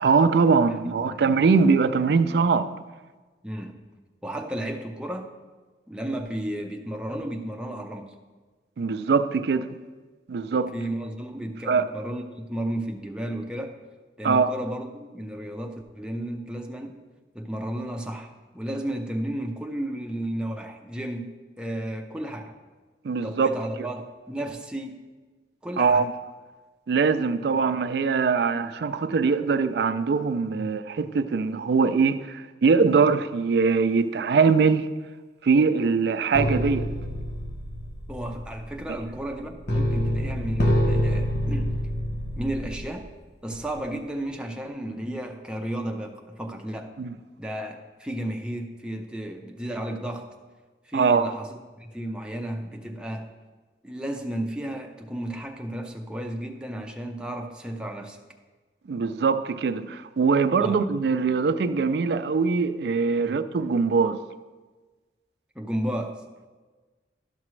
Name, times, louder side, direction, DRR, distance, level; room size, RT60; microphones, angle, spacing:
voice 1, 0.0-2.7 8.8-9.7 10.3-10.7 11.7-11.9 14.2-14.5 23.0-23.5 23.8-23.9 25.8-26.1 26.9-34.9 35.4-36.9 47.0-47.1 50.9-51.3 58.9-64.2, right 5 dB, 70° right, 0.4 m, -22 dB
voice 2, 0.8-1.2 3.4-3.8 4.2-5.3 5.9-8.1 10.7-13.8 14.2-17.0 17.3-21.3 21.6-22.5 23.2-25.0 25.6-26.1 30.5-30.7 38.1-41.7 42.4-43.1 43.4-46.9 47.4-50.3 50.9-53.3 53.8-58.2 60.6-60.8 63.1-63.4 65.6-66.2, right 1 dB, 5° right, 0.5 m, -33 dB
sound 1, 36.3-43.0 43.5-43.8, equal, 65° left, 1.0 m, -27 dB
12.0 x 6.0 x 3.2 m
head